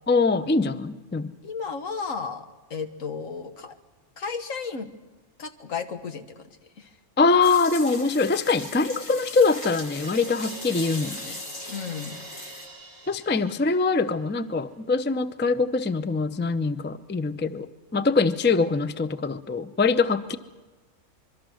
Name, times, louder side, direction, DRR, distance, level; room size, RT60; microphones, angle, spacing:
voice 1, 0.1-1.3 7.2-11.4 13.1-20.4, left 4 dB, 15° left, 12 dB, 0.4 m, -23 dB
voice 2, 1.4-3.8 4.2-4.9 5.4-6.5 6.8-6.9 11.7-12.2, left 5 dB, 80° left, 7 dB, 1.8 m, -34 dB
sound 1, 7.4-12.7, left 2 dB, 60° left, 2.7 m, -39 dB
Crash cymbal, 9.4-14.3, right 1 dB, 35° left, 6.2 m, -44 dB
25.5 x 23.0 x 6.3 m, 1.2 s
omnidirectional pair, 1.4 m